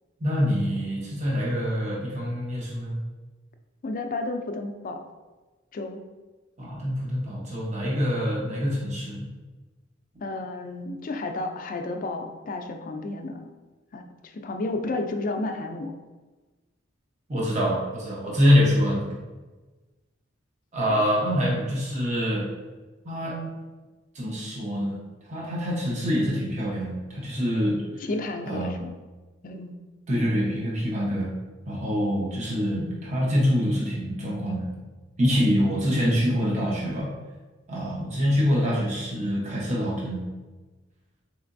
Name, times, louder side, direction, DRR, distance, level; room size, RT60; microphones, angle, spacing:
voice 1, 0.2-3.0 6.6-9.3 17.3-19.0 20.7-22.4 23.0-23.3 24.1-25.0 25.3-28.1 28.4-28.8 30.1-31.3 31.7-34.7 35.2-37.1 37.7-40.3, equal, 35° right, -5 dB, 0.9 m, -25 dB
voice 2, 3.8-5.0 5.7-6.0 10.2-13.5 13.9-14.1 14.3-15.9 20.9-21.0 28.0-28.9 29.4-29.8, left 2 dB, 45° left, 5 dB, 0.4 m, -32 dB
3.8 x 3.2 x 2.5 m, 1.2 s
head